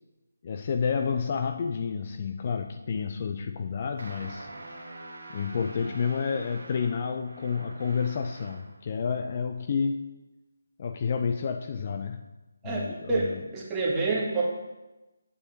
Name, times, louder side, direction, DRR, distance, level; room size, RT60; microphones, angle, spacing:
voice 1, 0.4-4.5 5.3-10.0 10.8-12.2 12.6-13.4, left 6 dB, 35° left, 6 dB, 0.4 m, -30 dB
sound 1, 4.0-8.8, right 2 dB, 65° right, 1.4 m, -45 dB
voice 2, 13.5-14.4, right 3 dB, 10° right, -6 dB, 1.7 m, -27 dB
8.8 x 8.5 x 2.8 m, 1.1 s
figure-of-eight pair, 155°, 0 cm